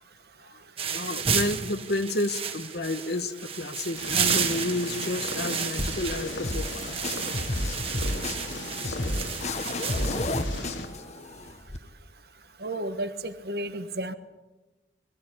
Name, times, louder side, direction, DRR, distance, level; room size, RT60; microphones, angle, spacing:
sound 1, 0.8-10.6, right 6 dB, 30° right, 1.9 m, -32 dB
voice 1, 0.9-6.8, left 2 dB, 60° left, 11 dB, 1.3 m, -30 dB
Purr, 4.0-10.9, left 2 dB, 80° left, 3.3 m, -37 dB
sound 2, 5.8-11.8, left 1 dB, 40° left, 1.2 m, -32 dB
voice 2, 12.6-14.1, right 1 dB, 55° right, 10 dB, 1.4 m, -32 dB
21.5 x 15.5 x 9.9 m, 1.1 s
head